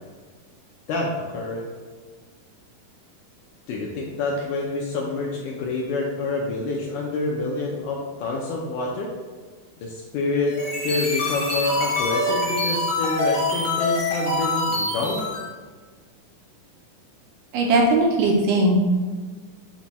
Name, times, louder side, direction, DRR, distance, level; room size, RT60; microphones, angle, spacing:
voice 1, 0.9-1.7 3.7-9.1 9.8-10.6 10.8-15.3, left 3 dB, 80° left, -2 dB, 1.8 m, -27 dB
sound 1, 10.4-15.5, left 2 dB, 65° left, 1.5 m, -25 dB
voice 2, 17.5-18.8, right 2 dB, 80° right, -1 dB, 2.0 m, -19 dB
6.0 x 2.2 x 4.0 m, 1.5 s
omnidirectional pair, 4.0 m